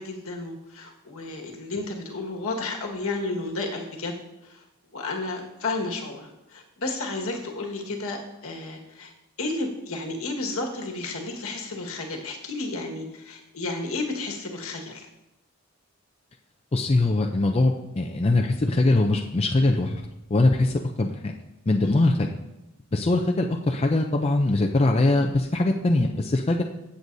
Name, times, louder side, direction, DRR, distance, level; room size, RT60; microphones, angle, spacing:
voice 1, 0.0-4.1 4.4-4.6 4.9-9.1 9.4-15.1 21.8-21.9 23.1-23.2, left 2 dB, 65° left, 1 dB, 1.6 m, -32 dB
voice 2, 16.7-20.0 20.3-21.3 21.7-22.3 22.9-26.6, left 2 dB, 25° left, 2 dB, 0.5 m, -22 dB
15.5 x 7.9 x 2.7 m, 0.94 s
head